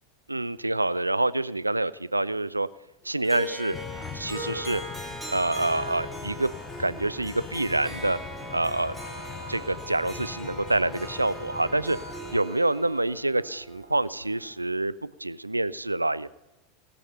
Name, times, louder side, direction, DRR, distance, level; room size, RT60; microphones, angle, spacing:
voice 1, 0.3-2.7 3.0-3.8 4.1-4.8 5.3-6.5 6.8-8.2 8.5-9.0 9.7-12.0 12.3-14.9 15.2-16.3, right 2 dB, 85° right, 18 dB, 0.3 m, -27 dB
Harp, 3.2-14.5, equal, 5° left, 3.0 m, -40 dB
sound 1, 3.7-12.4, left 10 dB, 35° left, 0.4 m, -42 dB
Trumpet, 5.7-12.6, right 1 dB, 80° left, 3.9 m, -45 dB
18.0 x 7.2 x 5.5 m, 0.99 s
figure-of-eight pair, 85°, 0 cm